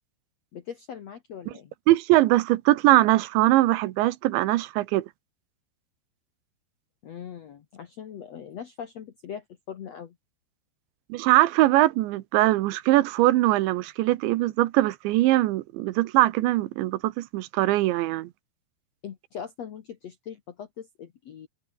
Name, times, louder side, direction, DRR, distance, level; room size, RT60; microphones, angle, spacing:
voice 1, 0.5-1.7 7.0-10.2 19.0-21.5, left 8 dB, 65° left, 1.6 m, -40 dB
voice 2, 1.9-5.1 11.1-18.3, right 17 dB, 85° right, 3.3 m, -21 dB
omnidirectional pair, 5.2 m